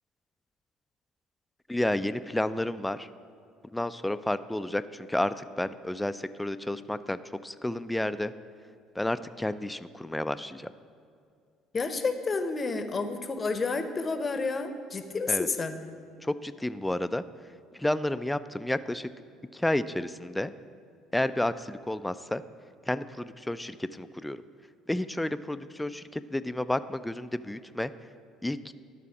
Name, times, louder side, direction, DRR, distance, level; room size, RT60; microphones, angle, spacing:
voice 1, 1.7-3.1 3.7-8.3 9.0-10.7 15.3-15.5 16.2-17.2 17.7-19.1 19.5-20.5 21.1-22.4 22.9-24.4 24.9-27.9 28.4-28.7, left 1 dB, 10° left, 13 dB, 0.3 m, -31 dB
voice 2, 11.7-15.7, left 4 dB, 30° left, 9 dB, 0.7 m, -30 dB
11.5 x 4.1 x 5.8 m, 2.3 s
figure-of-eight pair, 55°, 0 cm